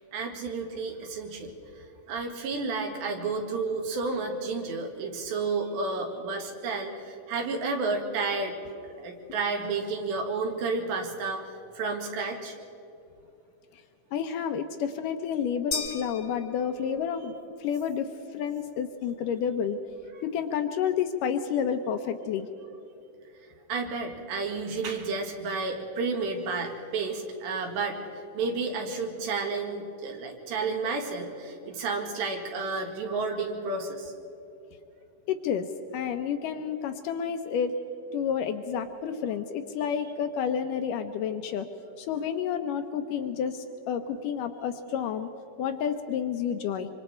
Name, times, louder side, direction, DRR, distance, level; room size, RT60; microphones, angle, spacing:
voice 1, 0.1-8.6 8.8-12.6 20.1-20.2 23.7-34.1, right 4 dB, 90° right, 2 dB, 4.3 m, -31 dB
voice 2, 14.1-17.3 17.6-19.8 20.2-22.5 35.3-35.7 35.9-37.7 38.1-41.7 42.0-45.3 45.6-46.9, left 7 dB, 85° left, 7 dB, 1.9 m, -30 dB
sound 1, 15.7-17.2, left 4 dB, 45° left, 1.1 m, -36 dB
25.5 x 25.5 x 4.5 m, 2.9 s
omnidirectional pair, 4.8 m